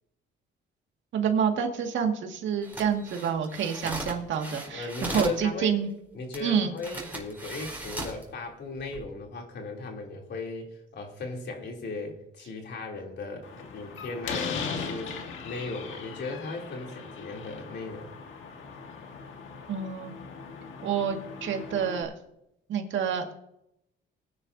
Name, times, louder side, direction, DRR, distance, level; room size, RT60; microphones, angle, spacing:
voice 1, 1.1-5.9 6.4-6.7 19.7-20.1 20.8-22.1 22.7-23.3, right 7 dB, 70° right, 3 dB, 1.9 m, -28 dB
sound 1, 2.6-5.4 6.3-6.4 6.8-8.2 8.8-9.0, right 1 dB, 10° right, 4.2 m, -37 dB
voice 2, 4.7-5.7 6.1-18.1, left 3 dB, 60° left, 1 dB, 3.0 m, -37 dB
Slam, 13.4-22.0, left 5 dB, 80° left, 1.6 m, -39 dB
20.0 x 10.0 x 2.7 m, 0.81 s
cardioid pair, 90°, 20 cm